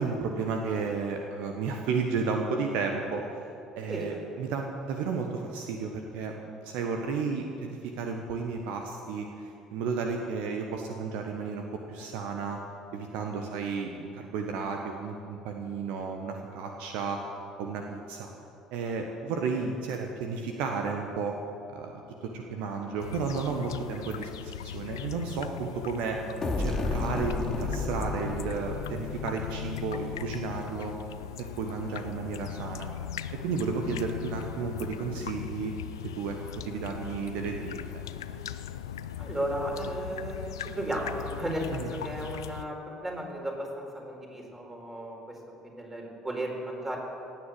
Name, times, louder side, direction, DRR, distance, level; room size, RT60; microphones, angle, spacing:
voice 1, 0.0-3.4 3.8-12.6 12.9-17.2 17.6-18.3 18.7-21.4 21.7-26.2 26.6-30.9 31.4-32.9 33.4-35.7 36.2-36.4 36.6-37.7 41.7-41.9, right 5 dB, 60° right, 3 dB, 1.2 m, -33 dB
voice 2, 3.9-4.2 39.2-45.4 45.6-47.0, right 1 dB, 15° right, 0 dB, 4.4 m, -34 dB
sound 1, 23.0-42.7, left 10 dB, 75° left, 0.5 m, -39 dB
sound 2, 26.4-30.1, left 2 dB, 25° left, 2.4 m, -33 dB
17.0 x 9.1 x 7.9 m, 2.7 s
figure-of-eight pair, 55°, 2 cm